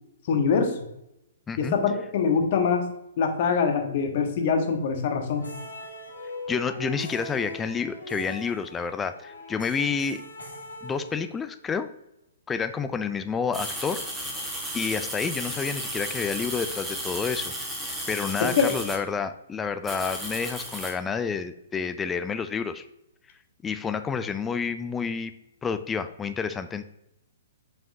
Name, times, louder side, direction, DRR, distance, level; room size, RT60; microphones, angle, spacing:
voice 1, 0.3-0.7 1.6-2.9 3.2-5.5 18.4-18.7, left 5 dB, 45° left, 5 dB, 1.1 m, -24 dB
voice 2, 1.5-1.8 6.5-10.2 10.8-11.9 12.5-14.0 14.7-17.5 18.1-22.8 23.6-25.3 25.6-26.8, left 5 dB, 15° left, 11 dB, 0.4 m, -29 dB
sound 1, 5.3-11.6, left 1 dB, 70° left, 1.9 m, -40 dB
sound 2, 13.5-19.0 19.8-20.9, equal, 5° right, 1.4 m, -34 dB
7.0 x 5.5 x 2.7 m, 0.84 s
figure-of-eight pair, 120°, 0 cm